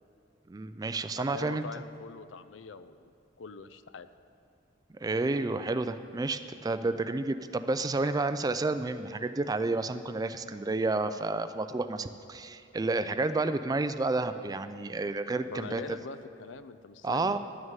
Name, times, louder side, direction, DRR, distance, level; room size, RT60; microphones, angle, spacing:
voice 1, 0.5-1.6 5.0-15.8 17.0-17.4, right 3 dB, 20° right, 11 dB, 0.3 m, -30 dB
voice 2, 1.2-3.1 3.4-4.1 15.5-17.4, left 4 dB, 70° left, 12 dB, 0.5 m, -43 dB
11.0 x 6.4 x 8.9 m, 2.5 s
head